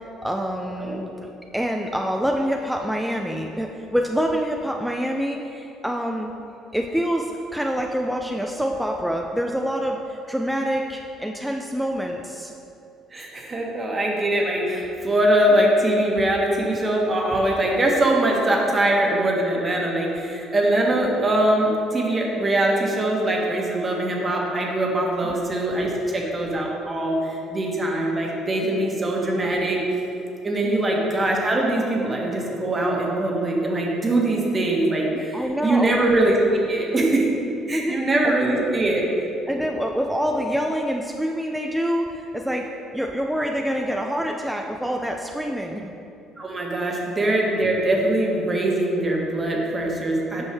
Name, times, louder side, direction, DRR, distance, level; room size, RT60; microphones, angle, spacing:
voice 1, 0.2-6.3 6.7-12.5 25.2-25.4 28.6-28.8 30.6-30.8 35.1-36.0 37.7-38.0 38.2-38.6 39.5-45.9 46.8-47.0 50.4-50.5, equal, 5° right, 1 dB, 0.5 m, -26 dB
voice 2, 13.1-29.8 30.4-37.2 37.7-39.0 46.4-50.4, right 1 dB, 30° right, -1 dB, 1.5 m, -22 dB
8.0 x 5.3 x 3.5 m, 2.7 s
supercardioid pair, 70°, 0 cm